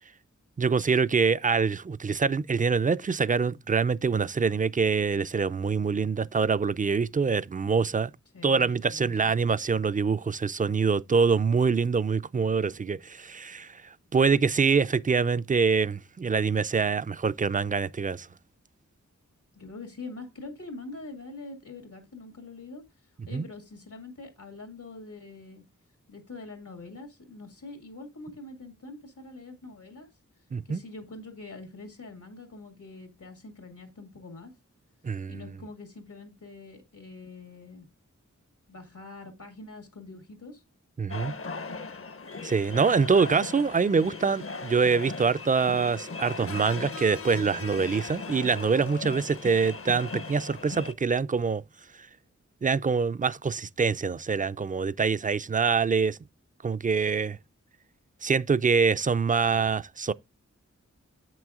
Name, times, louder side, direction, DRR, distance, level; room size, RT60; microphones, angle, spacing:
voice 1, 0.6-8.1 8.4-13.8 14.1-18.3 23.3-23.4 30.5-30.8 35.0-35.4 41.0-41.3 42.4-51.6 52.6-56.2 56.6-57.4 58.2-60.1, right 5 dB, 30° right, 0.3 m, -25 dB
voice 2, 8.3-9.3 19.5-25.6 26.1-30.1 30.6-34.5 35.3-37.9 38.7-40.6, left 3 dB, 90° left, 2.1 m, -44 dB
sound 1, 41.1-50.9, left 3 dB, 45° left, 0.6 m, -38 dB
8.2 x 6.1 x 3.6 m
wide cardioid pair, 65°, 30 cm